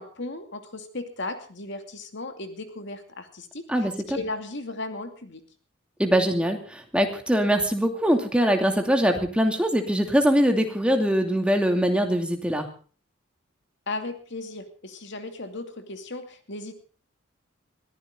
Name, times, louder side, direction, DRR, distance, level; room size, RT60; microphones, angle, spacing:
voice 1, 0.0-5.4 13.9-16.7, left 2 dB, 60° left, 7 dB, 2.6 m, -36 dB
voice 2, 3.7-4.2 6.0-12.7, equal, 5° right, 4 dB, 2.6 m, -22 dB
22.0 x 15.0 x 3.8 m, 0.40 s
head